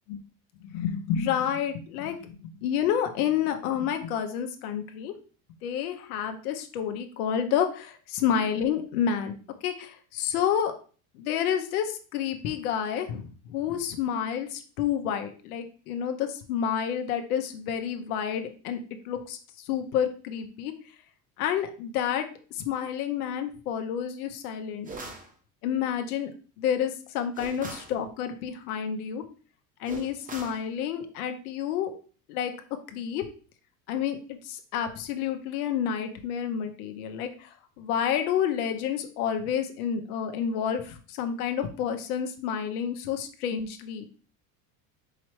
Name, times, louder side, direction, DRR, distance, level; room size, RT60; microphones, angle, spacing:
voice 1, 0.6-5.1 5.6-9.3 9.6-10.7 11.1-18.8 19.0-20.7 21.4-25.1 25.6-26.3 26.6-29.2 29.8-31.9 32.3-32.5 32.9-33.3 33.9-34.2 34.4-44.1, left 8 dB, 85° left, 6 dB, 0.8 m, -29 dB
sound 1, 24.9-25.3 27.4-28.0 29.9-30.6, right 3 dB, 20° right, 0.8 m, -40 dB
4.8 x 3.0 x 3.1 m, 0.39 s
supercardioid pair, 110°, 43 cm